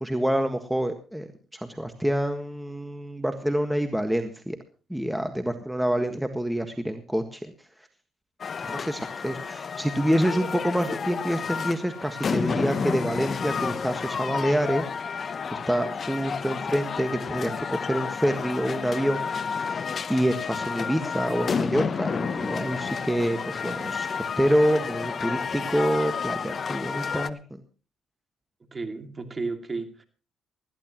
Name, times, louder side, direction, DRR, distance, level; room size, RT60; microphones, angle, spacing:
voice 1, 0.0-4.6 4.9-7.5 8.6-14.9 15.5-19.8 20.1-27.4, equal, 5° right, 1.6 m, -27 dB
sound 1, 8.4-27.3, left 6 dB, 45° left, 0.9 m, -31 dB
voice 2, 28.7-30.0, right 3 dB, 30° right, 2.5 m, -33 dB
20.5 x 14.5 x 3.0 m
cardioid pair, 90°, 0 cm